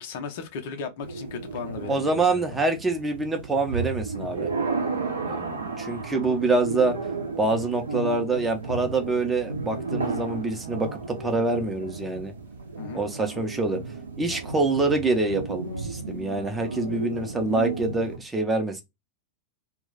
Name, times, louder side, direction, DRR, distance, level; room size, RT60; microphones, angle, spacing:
voice 1, 0.0-2.4 12.8-13.0, left 5 dB, 50° left, 0.5 m, -36 dB
sound 1, 1.0-18.2, right 4 dB, 75° right, 0.5 m, -33 dB
voice 2, 1.9-4.5 5.2-7.0 7.4-12.3 12.9-13.8 14.2-18.8, right 3 dB, 10° right, 0.5 m, -26 dB
2.3 x 2.0 x 3.8 m
figure-of-eight pair, 90°, 0 cm